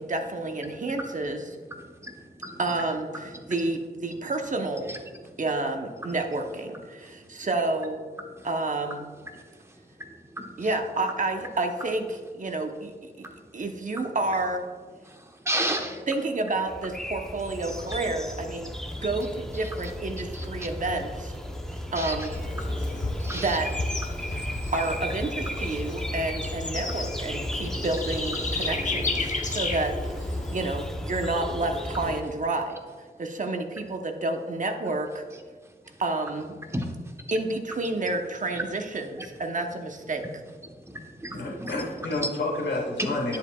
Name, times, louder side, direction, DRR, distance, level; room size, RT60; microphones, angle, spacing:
voice 1, 0.0-1.4 2.6-4.9 5.4-8.0 8.4-9.1 10.6-12.9 13.2-13.3 13.5-14.6 16.1-18.7 19.0-21.3 21.9-22.4 23.3-23.7 24.7-32.8 33.2-35.2 36.0-36.6 37.3-40.2, right 2 dB, 45° right, 4 dB, 0.9 m, -29 dB
voice 2, 1.7-2.6 3.4-3.5 4.9-5.4 8.4-8.5 9.3-9.4 10.0-10.7 13.2-13.4 15.1-16.1 20.3-20.4 21.7-22.3 22.6-23.6 24.1-24.2 24.6-24.7 26.4-26.5 29.3-29.4 36.7-36.9 40.6-41.7, right 1 dB, 15° right, 2 dB, 1.1 m, -35 dB
sound 1, 16.7-32.2, left 1 dB, 5° left, 0.8 m, -35 dB
Bird / Insect, 22.3-30.9, left 2 dB, 45° left, 1.0 m, -33 dB
voice 3, 41.3-43.4, left 2 dB, 85° left, -2 dB, 1.8 m, -30 dB
10.5 x 7.3 x 2.4 m, 1.6 s
cardioid pair, 65°, 18 cm